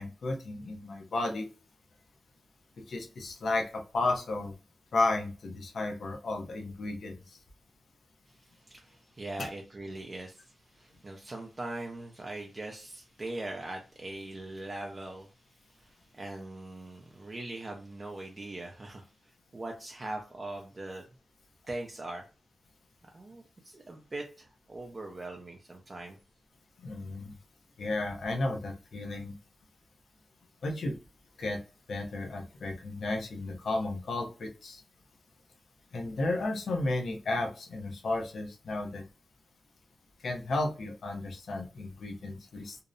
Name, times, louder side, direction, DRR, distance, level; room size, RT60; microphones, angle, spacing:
voice 1, 0.0-1.5 2.8-4.5 4.9-7.2 9.4-9.5 26.8-27.3 27.8-29.4 30.6-31.0 31.4-31.6 31.9-34.8 35.9-39.1 40.2-42.8, left 2 dB, 75° left, 3 dB, 0.6 m, -33 dB
voice 2, 8.3-15.3 15.7-21.1 21.7-22.2 23.1-26.2, right 2 dB, 30° right, 1 dB, 0.4 m, -41 dB
2.7 x 2.0 x 2.4 m, 0.34 s
wide cardioid pair, 110°, 0 cm